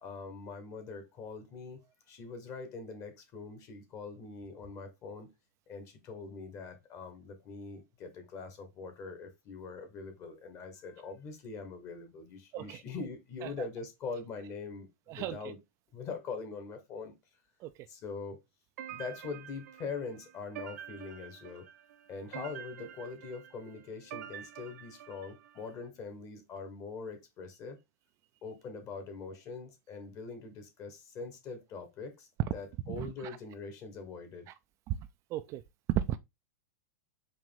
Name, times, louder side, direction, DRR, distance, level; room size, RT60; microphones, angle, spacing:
voice 1, 0.0-1.8 2.1-5.3 5.7-15.6 15.9-17.2 17.9-18.4 18.9-21.7 22.1-27.8 28.4-34.5, left 4 dB, 35° left, 1.4 m, -43 dB
sound 1, 18.8-25.7, right 10 dB, 70° right, 0.7 m, -47 dB
voice 2, 32.9-33.4 34.5-34.6 34.9-35.0 35.3-35.6 35.9-36.2, right 12 dB, 35° right, 0.3 m, -34 dB
4.8 x 2.6 x 3.7 m
hypercardioid pair, 125°, 9 cm